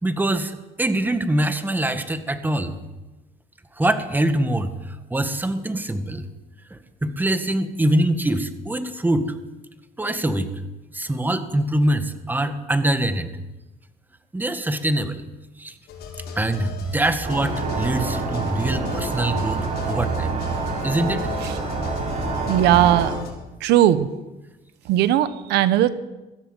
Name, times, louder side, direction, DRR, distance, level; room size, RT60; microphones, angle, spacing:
voice 1, 0.0-2.8 3.7-6.2 6.7-9.3 10.0-10.5 10.9-13.4 14.3-15.2 15.6-15.8 16.4-19.6 19.9-20.3 20.8-21.3, right 1 dB, 10° right, 9 dB, 1.8 m, -24 dB
sound 1, 15.9-23.3, left 3 dB, 70° left, 7.0 m, -38 dB
sound 2, 17.2-23.1, right 3 dB, 45° right, 7.6 m, -27 dB
voice 2, 22.5-23.1 23.6-24.1 24.9-25.9, right 12 dB, 85° right, 14 dB, 1.1 m, -18 dB
21.5 x 15.0 x 8.1 m, 1.1 s
cardioid pair, 110°, 17 cm